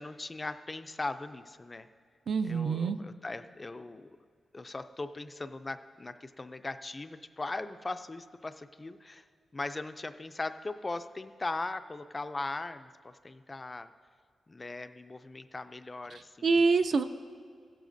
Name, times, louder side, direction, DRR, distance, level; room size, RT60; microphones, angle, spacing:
voice 1, 0.0-1.9 2.4-4.1 4.5-9.2 9.5-13.9 14.5-16.6, left 2 dB, 20° left, 10 dB, 0.3 m, -39 dB
voice 2, 2.3-3.0 16.4-17.0, right 4 dB, 55° right, 9 dB, 0.4 m, -25 dB
16.0 x 12.0 x 2.6 m, 2.1 s
wide cardioid pair, 170°, 0 cm